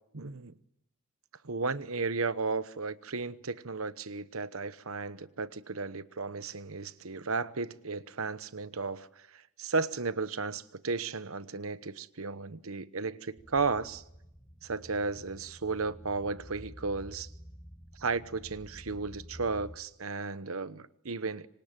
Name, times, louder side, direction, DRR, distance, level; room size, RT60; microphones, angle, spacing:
voice 1, 0.1-0.5 1.4-14.0 14.6-17.3 18.0-21.5, right 4 dB, 80° right, 1.1 m, -34 dB
sound 1, 13.4-19.8, equal, 10° left, 5.1 m, -50 dB
27.0 x 25.0 x 9.0 m
head